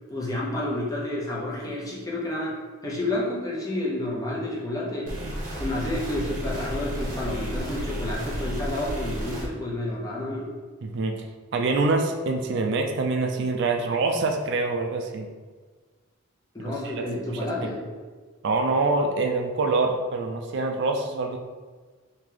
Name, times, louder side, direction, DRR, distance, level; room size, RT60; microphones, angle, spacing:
voice 1, 0.0-5.1 5.6-10.5 16.5-17.9, left 1 dB, 15° left, -5 dB, 0.7 m, -30 dB
sound 1, 5.1-9.5, equal, 40° right, 0.9 m, -32 dB
voice 2, 10.8-11.2 11.5-15.3 16.6-17.0 17.3-17.4 18.4-21.4, right 3 dB, 55° right, 3 dB, 0.3 m, -25 dB
3.1 x 2.8 x 3.7 m, 1.4 s
head